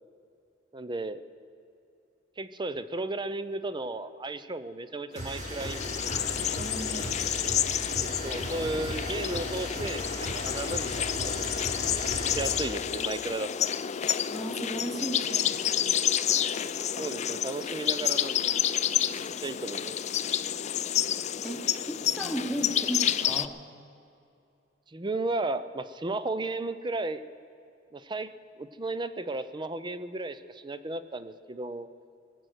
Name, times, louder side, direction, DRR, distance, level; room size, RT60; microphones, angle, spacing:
voice 1, 0.7-1.2 2.4-6.0 8.0-11.6 12.3-13.7 17.0-18.5 19.4-19.9 24.9-27.2 27.9-28.3 28.6-31.9, right 2 dB, 25° right, 13 dB, 0.6 m, -34 dB
sound 1, 5.1-12.7, right 1 dB, 40° right, 2.9 m, -37 dB
sound 2, 5.2-23.5, left 9 dB, 35° left, 0.4 m, -29 dB
voice 2, 6.6-7.4 14.3-15.9 20.9-21.1 21.4-23.6, right 1 dB, ahead, 2 dB, 1.3 m, -36 dB
20.5 x 7.8 x 8.1 m, 2.6 s
head